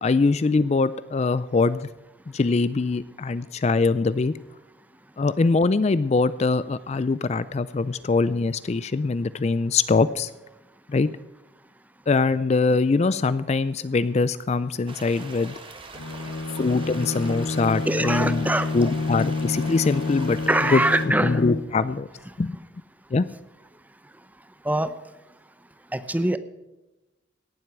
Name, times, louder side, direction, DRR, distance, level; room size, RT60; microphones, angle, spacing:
voice 1, 0.0-1.9 2.3-4.3 5.2-10.3 10.9-11.1 12.1-15.5 16.6-18.5 18.7-20.4 20.7-20.8 21.2-22.1 22.4-22.6 23.1-23.3, left 3 dB, 35° left, 15 dB, 0.4 m, -23 dB
sound 1, 14.9-21.1, right 3 dB, 25° right, 1.5 m, -43 dB
Bowed string instrument, 15.9-21.9, left 3 dB, 85° left, 0.6 m, -29 dB
voice 2, 17.9-18.7 20.5-21.4 24.6-24.9 25.9-26.4, right 1 dB, 10° right, 12 dB, 0.6 m, -23 dB
17.5 x 7.8 x 6.1 m, 1.1 s
head